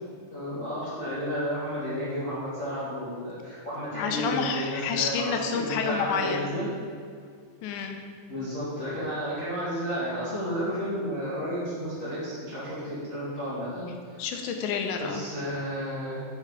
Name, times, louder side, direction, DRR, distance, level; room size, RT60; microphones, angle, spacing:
voice 1, 0.3-6.7 8.3-14.3 15.0-16.2, equal, 45° left, -12 dB, 1.0 m, -32 dB
voice 2, 3.9-6.5 7.6-8.0 14.2-15.2, left 6 dB, 80° left, 4 dB, 2.8 m, -29 dB
6.7 x 6.5 x 4.8 m, 2.2 s
omnidirectional pair, 5.2 m